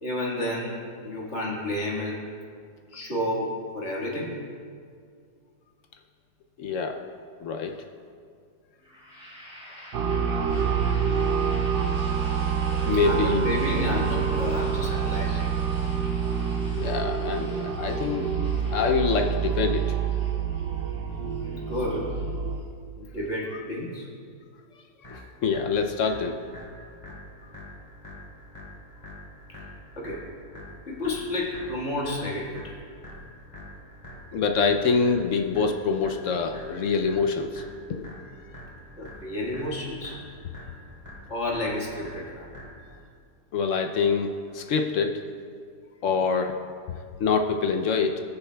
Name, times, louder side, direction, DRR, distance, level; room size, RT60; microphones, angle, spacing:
voice 1, 0.0-2.2 2.9-4.3 13.0-15.6 21.1-22.1 23.0-24.1 30.0-30.2 30.9-32.6 39.0-40.2 41.3-42.5, left 1 dB, 45° left, -4 dB, 1.9 m, -31 dB
voice 2, 6.6-7.0 7.4-7.8 12.8-13.5 16.7-18.3 18.7-19.9 25.1-26.4 34.3-37.6 37.9-38.1 43.5-45.2 46.0-46.5 47.2-48.2, left 5 dB, 75° left, 4 dB, 0.7 m, -25 dB
sound 1, 8.8-22.6, equal, 5° right, 2.0 m, -46 dB
sound 2, 9.9-22.6, right 7 dB, 80° right, 1.3 m, -27 dB
sound 3, 25.0-43.0, left 1 dB, 20° left, 2.6 m, -45 dB
21.0 x 7.0 x 2.2 m, 2.2 s
omnidirectional pair, 1.8 m